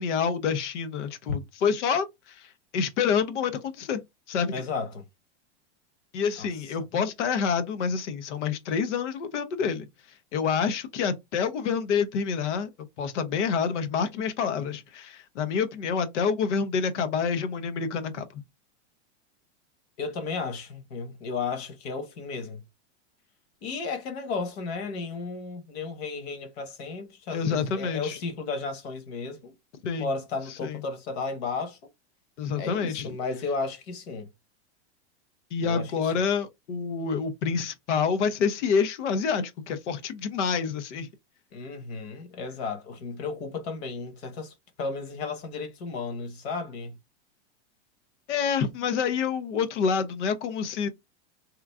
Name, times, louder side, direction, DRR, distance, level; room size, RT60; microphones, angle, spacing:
voice 1, 0.0-4.0 4.3-4.6 6.1-9.9 10.3-12.7 13.0-18.4 27.3-28.2 29.8-30.1 30.6-30.8 32.4-33.2 35.5-41.1 48.3-50.9, left 6 dB, 85° left, 0.8 m, -27 dB
voice 2, 4.5-5.1 6.4-6.5 20.0-22.6 23.6-29.5 30.0-31.8 32.6-34.3 35.6-36.3 41.5-47.0, left 4 dB, 60° left, 1.4 m, -34 dB
3.0 x 2.4 x 3.4 m
supercardioid pair, 150°, 35 cm